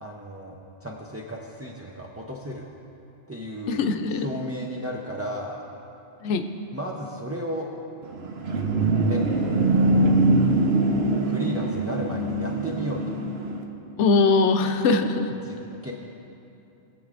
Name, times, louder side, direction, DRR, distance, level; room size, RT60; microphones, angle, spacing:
voice 1, 0.0-2.6 3.3-3.8 4.1-5.6 6.7-7.7 8.8-9.2 9.7-10.5 11.2-13.2 15.4-15.6 15.8-15.9, equal, 20° right, -2 dB, 0.4 m, -34 dB
voice 2, 3.7-4.3 6.2-6.5 14.0-15.3, left 4 dB, 85° left, 7 dB, 0.9 m, -22 dB
sound 1, 8.0-13.6, right 2 dB, 70° right, 1.1 m, -23 dB
21.0 x 7.8 x 2.5 m, 2.9 s
omnidirectional pair, 1.2 m